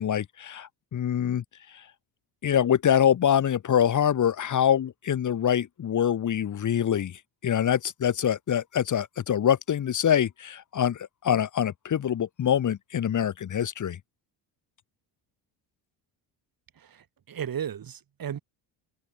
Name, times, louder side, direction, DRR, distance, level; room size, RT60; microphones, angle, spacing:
voice 1, 0.0-1.4 1.7-1.8 2.4-14.0, left 9 dB, 40° left, 1.0 m, -25 dB
voice 2, 16.8-18.4, right 8 dB, 45° right, 2.1 m, -35 dB
cardioid pair, 80°, 48 cm